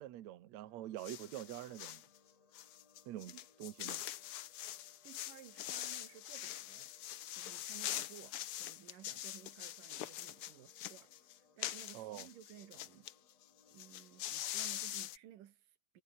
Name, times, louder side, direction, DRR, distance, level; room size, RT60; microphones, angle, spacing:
voice 1, 0.0-2.0 3.1-3.3 3.6-4.0 11.9-12.3, right 13 dB, 65° right, 2.2 m, -46 dB
sound 1, 0.6-15.0, left 4 dB, 50° left, 5.7 m, -70 dB
sound 2, 1.0-2.1 2.5-13.1 13.4-13.5 13.7-15.2, left 12 dB, 80° left, 1.2 m, -44 dB
voice 2, 3.1-3.5 3.8-4.0 5.0-13.1 13.7-16.0, right 11 dB, 85° right, 3.1 m, -57 dB
omnidirectional pair, 3.8 m